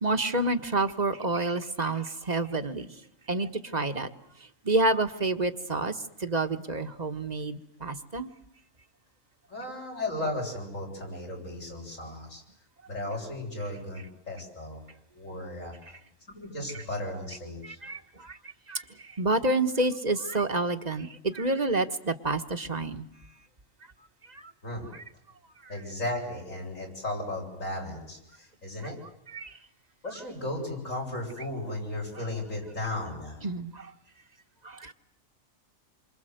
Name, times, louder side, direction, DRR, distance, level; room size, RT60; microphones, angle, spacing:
voice 1, 0.0-2.9 3.3-4.1 4.6-8.3 17.6-18.4 18.7-23.0 24.3-24.5 29.3-29.6 33.4-33.9 34.6-34.9, right 2 dB, 35° right, 8 dB, 1.5 m, -29 dB
voice 2, 9.5-12.4 12.9-14.8 15.1-15.7 16.3-17.8 24.6-24.9 25.7-29.0 30.0-33.5, left 1 dB, 80° left, 1 dB, 8.1 m, -35 dB
28.0 x 25.5 x 8.0 m, 0.77 s
omnidirectional pair, 1.3 m